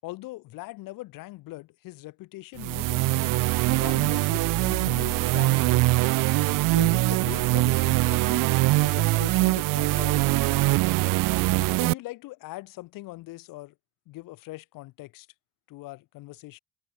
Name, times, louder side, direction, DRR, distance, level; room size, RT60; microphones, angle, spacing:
voice 1, 0.0-3.3 3.6-5.8 6.7-8.5 8.8-10.4 11.8-13.7 14.1-15.3 15.7-16.6, left 19 dB, 75° left, 6.1 m, -41 dB
sound 1, 2.6-11.9, right 20 dB, 75° right, 1.2 m, -23 dB
cardioid pair, 170°, 33 cm